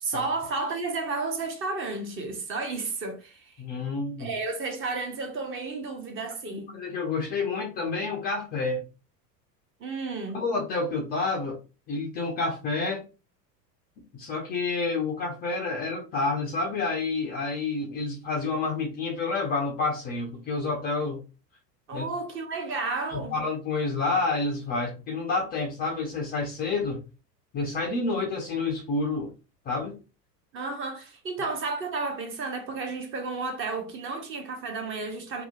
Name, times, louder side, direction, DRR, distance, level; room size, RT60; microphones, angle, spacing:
voice 1, 0.0-3.6 4.2-6.8 9.8-10.4 21.9-23.4 30.5-35.4, right 3 dB, 25° right, 0.7 m, -32 dB
voice 2, 3.6-4.3 6.5-8.8 10.3-11.6 11.9-13.0 14.0-21.2 21.9-22.1 23.1-27.0 27.5-29.3 29.7-30.0, left 3 dB, 20° left, 0.4 m, -29 dB
2.7 x 2.0 x 2.8 m
figure-of-eight pair, 80°, 49 cm